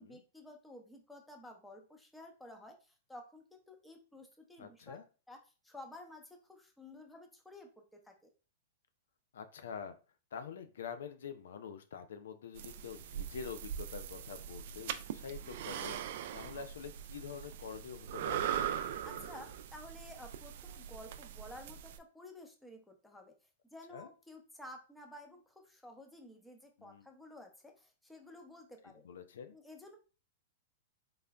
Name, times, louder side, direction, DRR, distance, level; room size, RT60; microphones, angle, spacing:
voice 1, 0.0-5.0 5.3-5.4 5.6-8.3 19.0-23.3 23.7-29.1 29.5-30.0, left 1 dB, 5° left, 3 dB, 0.7 m, -53 dB
voice 2, 4.6-5.0 9.3-10.0 10.3-16.0 16.3-18.5 23.9-24.1 26.8-27.0 29.0-29.5, left 7 dB, 75° left, 9 dB, 0.4 m, -46 dB
sound 1, 12.6-22.0, right 9 dB, 60° right, 0.3 m, -41 dB
3.8 x 3.3 x 2.2 m, 0.34 s
hypercardioid pair, 120°, 0 cm